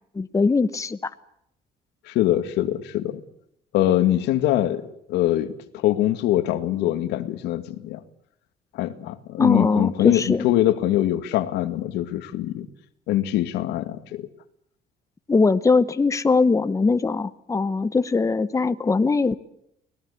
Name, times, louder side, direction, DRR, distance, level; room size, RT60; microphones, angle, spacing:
voice 1, 0.1-1.1 9.4-10.5 15.3-19.3, left 4 dB, 20° left, 12 dB, 1.0 m, -21 dB
voice 2, 2.1-3.2 3.7-4.8 5.1-8.0 8.7-12.7 13.1-14.3, left 13 dB, 90° left, 10 dB, 2.0 m, -23 dB
25.0 x 18.5 x 8.4 m, 0.76 s
cardioid pair, 110°, 17 cm